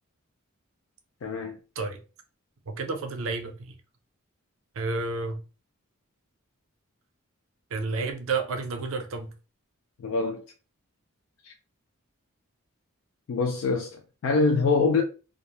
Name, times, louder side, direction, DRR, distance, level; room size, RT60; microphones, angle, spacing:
voice 1, 1.2-1.6 10.0-10.4 11.4-11.5 13.3-15.0, left 4 dB, 65° left, 0.3 m, -25 dB
voice 2, 2.7-3.7 4.8-5.4 7.7-9.3, right 3 dB, 70° right, 0.5 m, -30 dB
2.3 x 2.0 x 2.9 m
head